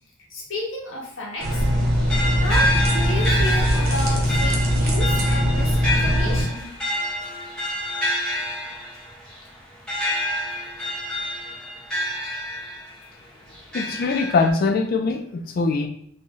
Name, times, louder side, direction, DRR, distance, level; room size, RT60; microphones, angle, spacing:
voice 1, 0.3-1.9 2.3-6.7, left 1 dB, 65° left, -5 dB, 1.1 m, -32 dB
sound 1, 1.4-13.0 13.5-14.5, left 1 dB, 5° left, 1.2 m, -28 dB
sound 2, 1.4-6.4, equal, 85° right, 0.8 m, -21 dB
voice 2, 13.7-15.9, left 4 dB, 45° left, 5 dB, 0.3 m, -22 dB
3.0 x 2.7 x 3.7 m, 0.67 s
head